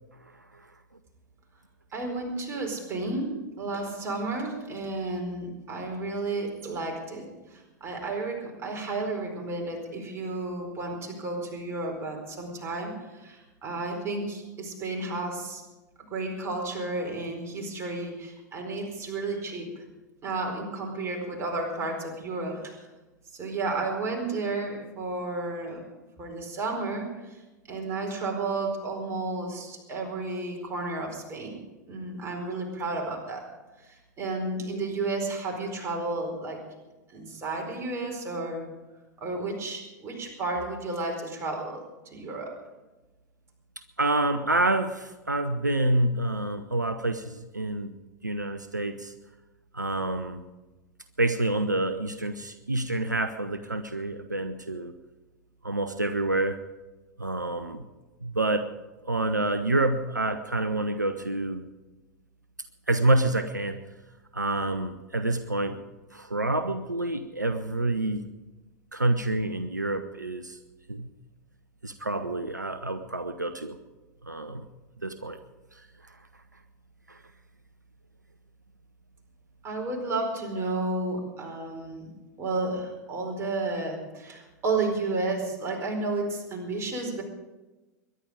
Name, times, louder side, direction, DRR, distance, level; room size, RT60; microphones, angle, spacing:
voice 1, 1.9-3.3 3.6-15.6 16.0-19.8 20.2-22.8 23.3-25.8 26.2-27.4 27.7-31.6 31.9-33.4 33.8-36.6 37.1-38.6 39.2-41.8 42.0-42.5 79.6-82.1 82.4-87.2, right 3 dB, 25° right, 1 dB, 4.6 m, -32 dB
voice 2, 44.0-47.9 48.2-49.1 49.7-50.4 51.2-54.9 55.6-56.6 57.2-57.8 58.2-58.7 59.1-61.7 62.9-63.8 64.3-65.8 66.1-68.2 68.9-70.6 70.9-71.1 71.8-73.8 74.3-74.6 75.0-75.4 77.1-77.2, right 2 dB, 85° right, 10 dB, 0.7 m, -27 dB
22.5 x 11.0 x 5.0 m, 1.1 s
figure-of-eight pair, 90°, 9 cm